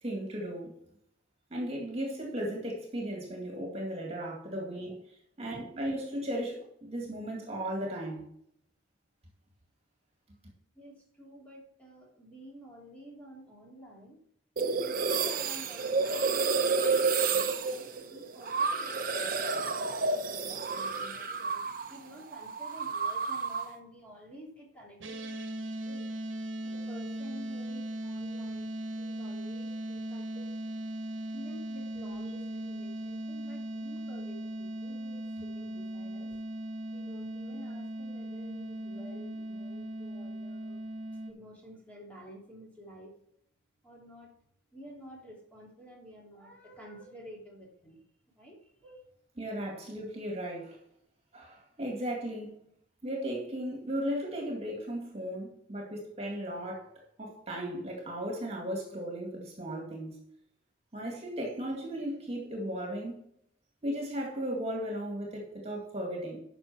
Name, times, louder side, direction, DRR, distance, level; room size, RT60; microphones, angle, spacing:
voice 1, 0.0-0.7 1.5-8.3 49.4-50.8 51.3-52.6 53.0-56.9 57.2-60.2 60.9-63.2 63.8-66.4, equal, 35° right, 2.2 m, -36 dB
voice 2, 10.7-14.2 14.7-26.1 26.6-30.5 31.3-36.4 36.9-40.9 41.3-43.1 43.8-44.3 44.7-48.0 48.4-49.1, equal, 10° left, 2.9 m, -51 dB
sound 1, 14.6-22.0 22.2-23.8, right 4 dB, 50° right, 0.9 m, -30 dB
sound 2, 25.0-41.3, right 1 dB, 85° right, 1.3 m, -38 dB
11.0 x 6.1 x 4.4 m
head